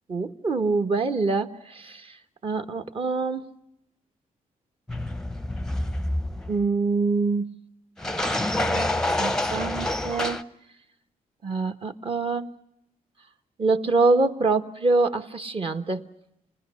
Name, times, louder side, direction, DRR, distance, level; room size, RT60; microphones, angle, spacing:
voice 1, 0.1-2.0 2.4-3.4 6.5-7.5 8.6-8.9 9.2-10.4 11.4-12.5 13.6-16.0, right 3 dB, 40° right, 7 dB, 1.3 m, -25 dB
sound 1, 4.9-6.6 8.0-10.4, left 1 dB, 5° left, 0.8 m, -27 dB
29.5 x 20.0 x 6.4 m, 0.83 s
cardioid pair, 105°, 15 cm